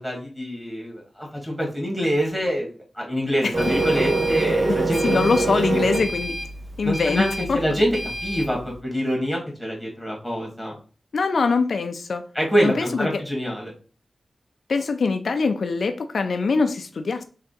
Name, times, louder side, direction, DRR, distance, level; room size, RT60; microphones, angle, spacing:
voice 1, 0.0-5.2 5.7-5.8 6.8-7.9 8.2-10.7 12.3-13.7, equal, 5° right, -2 dB, 1.6 m, -25 dB
Printer, 3.5-8.5, right 2 dB, 45° right, 0.7 m, -25 dB
voice 2, 5.0-6.4 6.8-7.6 11.1-12.2 12.6-13.2 14.7-17.2, left 4 dB, 70° left, 7 dB, 0.3 m, -23 dB
3.7 x 3.3 x 3.8 m, 0.38 s
wide cardioid pair, 130°, 0 cm